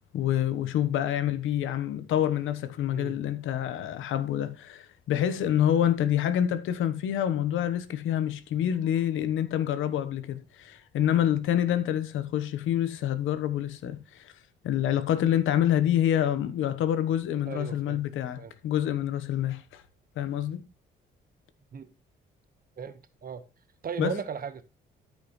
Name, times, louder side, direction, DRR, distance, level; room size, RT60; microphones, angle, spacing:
voice 1, 0.1-14.3 14.6-19.8 20.2-20.6 24.0-24.1, left 10 dB, 85° left, 1.0 m, -27 dB
voice 2, 17.5-18.0 18.4-18.5 21.7-21.9 22.8-23.4 23.8-24.6, right 7 dB, 45° right, 1.3 m, -36 dB
13.0 x 5.5 x 3.1 m
cardioid pair, 90°, 20 cm